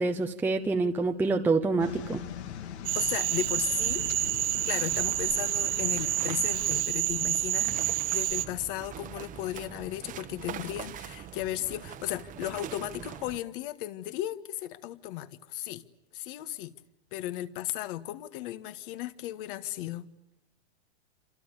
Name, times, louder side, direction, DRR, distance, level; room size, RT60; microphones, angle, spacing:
voice 1, 0.0-2.2, right 3 dB, 5° right, 0.9 m, -27 dB
sound 1, 1.8-6.8, left 9 dB, 70° left, 2.6 m, -41 dB
Cricket / Frog, 2.8-8.4, right 13 dB, 80° right, 1.5 m, -28 dB
voice 2, 2.9-4.1 4.7-15.8 16.1-16.7 17.1-20.1, left 14 dB, 50° left, 1.8 m, -35 dB
sound 2, 4.9-13.4, right 10 dB, 25° right, 1.3 m, -43 dB
28.5 x 27.5 x 7.0 m
supercardioid pair, 145°, 34 cm